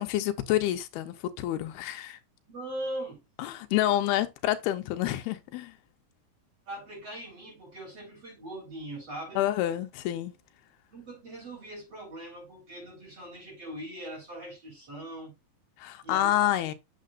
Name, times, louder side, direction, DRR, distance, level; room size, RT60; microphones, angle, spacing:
voice 1, 0.0-2.2 3.4-5.7 9.4-10.3 15.8-16.7, left 13 dB, 90° left, 2.7 m, -28 dB
voice 2, 2.5-3.2 3.9-4.0 6.7-9.4 10.9-15.3 16.0-16.5, right 1 dB, 40° right, 4.7 m, -40 dB
8.3 x 7.7 x 2.4 m
omnidirectional pair, 4.3 m